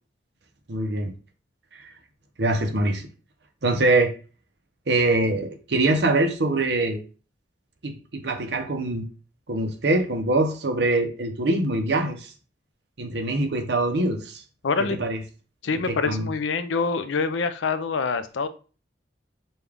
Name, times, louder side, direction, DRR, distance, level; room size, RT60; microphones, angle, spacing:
voice 1, 0.7-1.1 1.7-1.9 2.4-3.0 3.6-4.1 4.9-7.0 7.8-9.0 9.5-12.3 13.0-14.4 15.0-15.2 15.9-16.3, right 2 dB, 65° right, 5 dB, 0.7 m, -23 dB
voice 2, 14.6-15.0 15.6-18.5, left 4 dB, 85° left, 11 dB, 0.5 m, -25 dB
5.3 x 2.3 x 3.5 m, 0.36 s
head